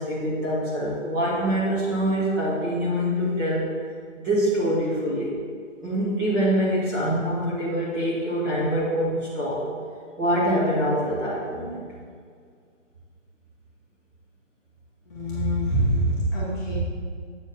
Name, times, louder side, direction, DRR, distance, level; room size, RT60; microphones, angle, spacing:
voice 1, 0.0-3.7 4.2-5.3 5.8-9.6 10.2-11.8, equal, 15° right, -8 dB, 1.1 m, -24 dB
voice 2, 15.1-16.7, right 1 dB, 15° left, -9 dB, 1.1 m, -24 dB
8.3 x 4.5 x 5.1 m, 2.1 s
hypercardioid pair, 165°, 38 cm